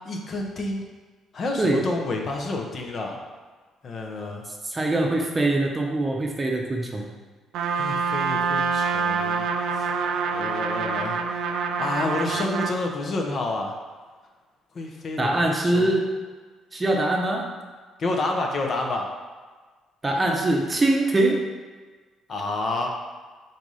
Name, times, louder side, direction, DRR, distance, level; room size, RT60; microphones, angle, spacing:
voice 1, 0.0-0.8 1.3-3.2 3.8-4.4 7.8-9.4 9.8-9.9 10.3-11.2 11.8-13.7 14.7-16.0 18.0-19.1 22.3-22.9, left 2 dB, 50° left, 1 dB, 0.7 m, -29 dB
voice 2, 4.6-7.1 15.2-16.1 16.7-17.5 20.0-21.4, right 2 dB, 25° right, 0 dB, 0.7 m, -23 dB
Trumpet, 7.5-12.8, right 5 dB, 80° right, 0.3 m, -26 dB
4.1 x 2.5 x 4.8 m, 1.4 s
cardioid pair, 90°, 0 cm